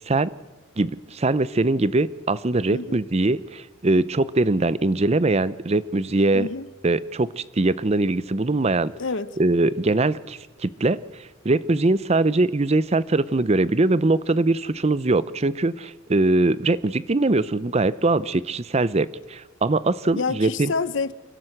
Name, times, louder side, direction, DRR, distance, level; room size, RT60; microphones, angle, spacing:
voice 1, 0.8-6.5 6.8-8.9 9.4-11.0 11.4-20.7, right 2 dB, 30° right, 0.6 m, -22 dB
voice 2, 6.3-6.7 9.0-9.3 20.2-21.1, left 4 dB, 70° left, 0.8 m, -27 dB
28.5 x 12.5 x 7.9 m
head